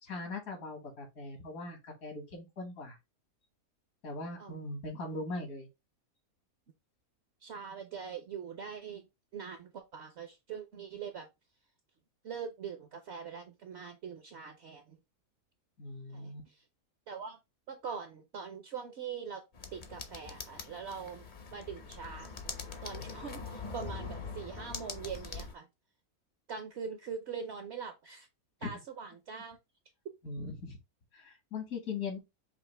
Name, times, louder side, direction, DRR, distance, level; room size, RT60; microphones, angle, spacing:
voice 1, 0.0-3.0 4.0-5.7 15.8-16.5 28.6-28.7 30.2-30.8 31.1-32.2, left 3 dB, 75° left, 1.9 m, -40 dB
voice 2, 7.4-9.1 9.3-11.3 12.2-15.0 16.1-16.3 17.1-17.4 17.7-19.4 19.7-21.3 21.5-22.3 22.8-25.7 26.5-28.3 28.6-29.6, right 6 dB, 60° right, 0.8 m, -42 dB
sound 1, 19.5-25.5, left 4 dB, 45° left, 0.7 m, -43 dB
5.7 x 2.4 x 3.3 m
omnidirectional pair, 1.5 m